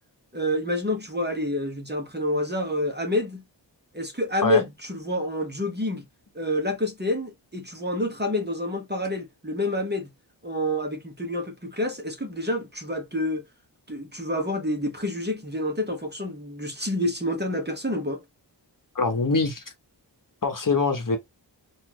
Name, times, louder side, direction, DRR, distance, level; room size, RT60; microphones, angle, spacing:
voice 1, 0.3-3.4 3.9-6.0 6.3-10.1 10.4-13.4 13.9-18.2, left 1 dB, 25° right, 1.2 m, -28 dB
voice 2, 18.9-19.6 20.4-21.2, left 4 dB, 45° left, 1.0 m, -23 dB
4.3 x 2.6 x 3.1 m
wide cardioid pair, 85°, 43 cm